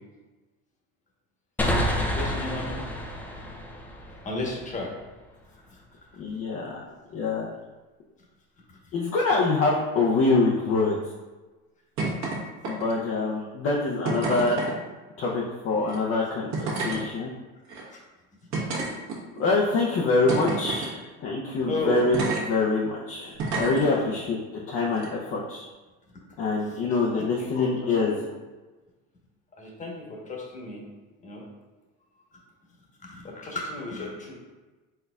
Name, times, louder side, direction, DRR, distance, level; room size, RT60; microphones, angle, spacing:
sound 1, 1.6-5.1, left 1 dB, 5° left, 0.3 m, -29 dB
voice 1, 2.0-2.8 4.2-4.9 21.7-22.1 23.8-24.1 27.1-28.3 29.6-30.0 30.3-30.8 31.2-31.4 33.1-34.3, left 2 dB, 20° left, -2 dB, 1.1 m, -33 dB
voice 2, 6.2-6.8 7.1-7.5 8.9-11.0 12.7-14.6 15.2-17.3 19.4-25.7 26.4-28.2, left 3 dB, 40° left, -3 dB, 0.6 m, -25 dB
sound 2, 12.0-12.4 12.6-13.1 14.0-14.7 15.8-16.0 16.5-17.0 17.7-17.8 18.5-19.4 20.3-20.9 22.1-22.4 23.4-23.8 24.9-25.1, right 3 dB, 50° right, 1.3 m, -29 dB
4.3 x 3.9 x 2.3 m, 1.2 s
supercardioid pair, 120°, 35 cm